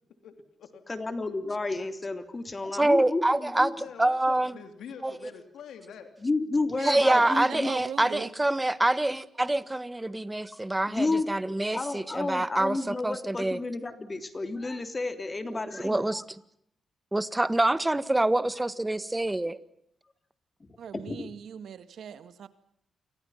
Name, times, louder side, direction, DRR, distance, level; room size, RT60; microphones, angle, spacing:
voice 1, 0.2-0.8 3.7-6.1, left 7 dB, 85° left, 3.2 m, -45 dB
voice 2, 0.9-3.7 6.2-7.7 10.8-16.2 20.6-21.3, left 3 dB, 30° left, 3.3 m, -31 dB
voice 3, 2.7-4.5 5.0-5.3 6.8-13.6 15.5-16.2 17.1-19.6, right 1 dB, 15° right, 1.5 m, -26 dB
voice 4, 6.8-8.3 20.8-22.5, right 8 dB, 75° right, 2.1 m, -39 dB
29.0 x 24.5 x 5.8 m
cardioid pair, 90°, 0 cm